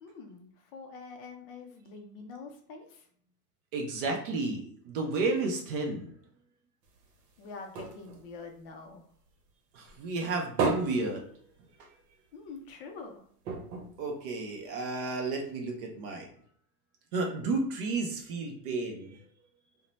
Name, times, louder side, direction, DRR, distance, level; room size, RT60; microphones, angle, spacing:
voice 1, 0.0-3.1 7.4-9.0 12.3-13.2, left 4 dB, 40° left, 3 dB, 0.4 m, -45 dB
voice 2, 3.7-6.1 9.7-11.2 14.0-16.3 17.1-19.2, right 3 dB, 40° right, 2 dB, 0.4 m, -32 dB
sound 1, 6.8-9.5 9.9-12.1 12.4-12.5 12.8-13.0 13.4-14.9 15.6-15.7, right 4 dB, 90° right, 0.8 m, -36 dB
2.6 x 2.1 x 2.9 m, 0.62 s
supercardioid pair, 135°, 47 cm